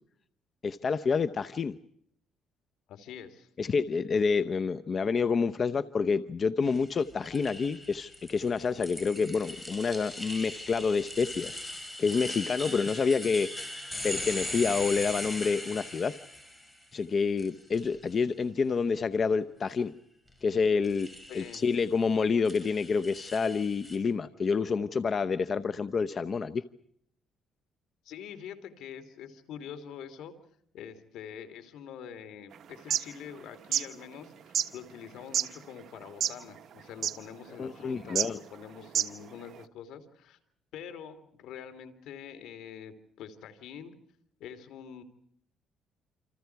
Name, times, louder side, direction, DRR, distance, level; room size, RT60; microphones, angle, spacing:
voice 1, 0.6-1.8 3.6-11.6 12.0-13.5 14.0-16.2 16.9-19.9 20.4-21.1 21.3-26.6 37.6-38.4, left 5 dB, 40° left, 12 dB, 0.8 m, -28 dB
voice 2, 2.9-3.5 21.3-21.6 28.0-30.3 30.7-40.4 40.7-43.9 44.4-45.0, left 8 dB, 75° left, 10 dB, 3.2 m, -45 dB
sound 1, 6.6-16.9 17.4-18.1 20.8-21.9 22.4-24.0, left 1 dB, 10° left, 5.8 m, -40 dB
sound 2, 32.7-33.0 33.6-33.8 34.5-34.7 35.3-35.5 36.1-36.4 36.7-36.8 37.0-37.2 38.1-38.3 38.8-39.2, right 9 dB, 55° right, 1.3 m, -27 dB
28.5 x 27.0 x 4.7 m, 0.68 s
cardioid pair, 105°, 0 cm